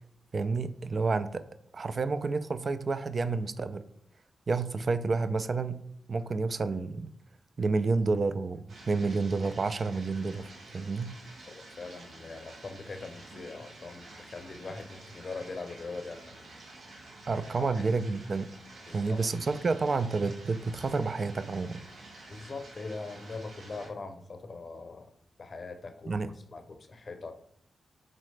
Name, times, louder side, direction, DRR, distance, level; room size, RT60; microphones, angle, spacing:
voice 1, 0.3-1.4 1.7-3.8 4.5-5.8 6.1-7.1 7.6-11.1 17.3-18.5 18.9-21.8 26.1-26.3, right 4 dB, 50° right, 12 dB, 0.3 m, -30 dB
filiing up the tub, 8.7-23.9, right 2 dB, 80° right, 1.0 m, -50 dB
voice 2, 11.5-16.5 17.6-18.0 18.9-19.2 22.3-25.1 25.4-26.1 26.5-27.5, left 3 dB, 50° left, 7 dB, 0.6 m, -42 dB
4.2 x 3.8 x 3.2 m, 0.71 s
cardioid pair, 70°, 0 cm